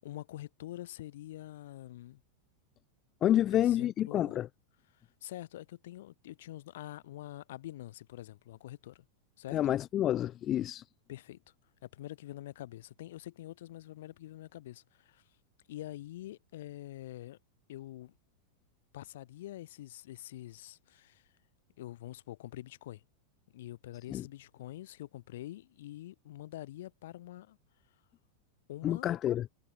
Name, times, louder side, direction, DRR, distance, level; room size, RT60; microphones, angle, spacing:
voice 1, 0.0-2.2 3.5-4.4 4.9-9.0 9.4-9.6 11.1-11.4 11.8-15.2 15.7-17.4 17.7-18.1 18.9-21.3 21.8-23.0 23.5-27.6 28.7-29.1, left 14 dB, 55° left, 2.9 m, -45 dB
voice 2, 3.2-4.5 9.5-10.8 24.1-24.2 28.8-29.5, left 12 dB, 30° left, 0.6 m, -28 dB
figure-of-eight pair, 90°, 0 cm